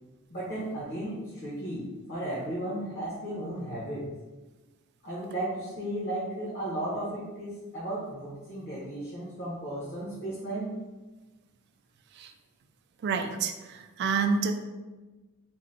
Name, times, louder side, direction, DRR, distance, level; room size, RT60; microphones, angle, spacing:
voice 1, 0.3-4.1 5.0-10.7, right 1 dB, 45° left, -8 dB, 0.9 m, -35 dB
voice 2, 13.0-14.5, right 5 dB, 50° right, 7 dB, 0.3 m, -28 dB
3.8 x 2.2 x 4.0 m, 1.2 s
head